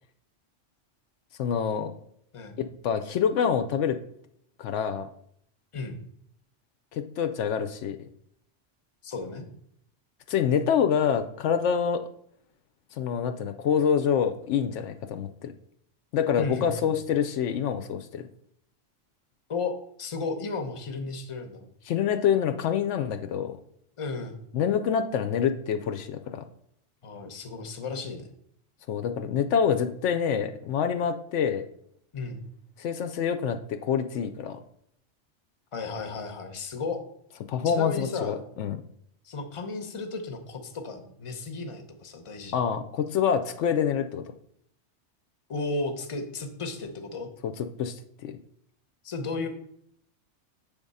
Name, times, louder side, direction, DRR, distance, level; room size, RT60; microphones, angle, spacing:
voice 1, 1.4-1.9 2.6-4.0 4.6-5.1 6.9-8.0 10.3-12.0 13.0-15.5 16.1-18.3 21.9-23.6 24.5-26.4 28.9-31.6 32.8-34.6 37.5-38.8 42.5-44.2 47.4-47.9 48.2-48.3, left 7 dB, 75° left, 8 dB, 0.9 m, -26 dB
voice 2, 9.0-9.5 16.4-16.9 19.5-21.7 24.0-24.4 27.0-28.3 32.1-32.5 35.7-37.0 37.6-38.4 39.2-42.6 45.5-47.3 49.0-49.5, left 3 dB, 30° left, 6 dB, 0.7 m, -34 dB
7.4 x 3.6 x 5.4 m, 0.69 s
omnidirectional pair, 1.2 m